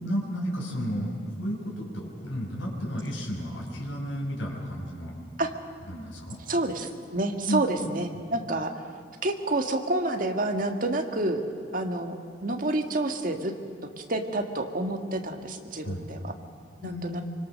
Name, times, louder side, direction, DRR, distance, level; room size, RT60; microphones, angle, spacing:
voice 1, 0.0-5.1 5.9-6.4 7.5-7.9 15.8-16.1 16.8-17.1, equal, 75° left, -2 dB, 5.4 m, -32 dB
voice 2, 6.5-8.7 9.2-11.4 11.7-13.5 14.1-16.3 16.8-17.2, right 2 dB, 45° right, 5 dB, 1.8 m, -28 dB
25.0 x 24.5 x 6.5 m, 2.4 s
head